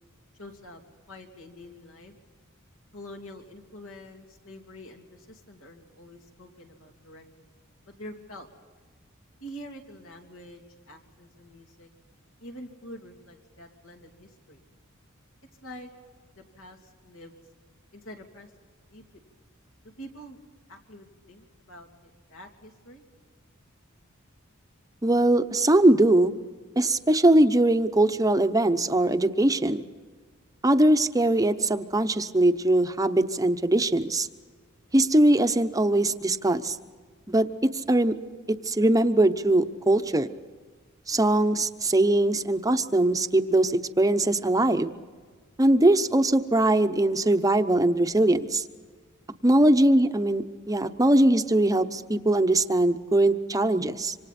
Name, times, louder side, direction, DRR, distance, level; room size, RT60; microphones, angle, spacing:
voice 1, 0.4-0.8 1.1-2.1 2.9-7.5 7.9-8.5 9.4-11.9 12.4-14.6 15.6-15.9 16.4-16.8 17.0-17.4 17.9-18.5 18.9-19.0 20.0-20.4 20.7-23.0, equal, 80° left, 2 dB, 3.0 m, -46 dB
voice 2, 25.0-26.3 26.8-29.9 30.6-34.3 34.9-36.8 37.3-38.1 38.6-40.3 41.1-44.9 45.6-48.6 49.4-54.1, right 1 dB, 15° right, 9 dB, 0.8 m, -21 dB
27.0 x 25.5 x 4.3 m, 1.5 s
head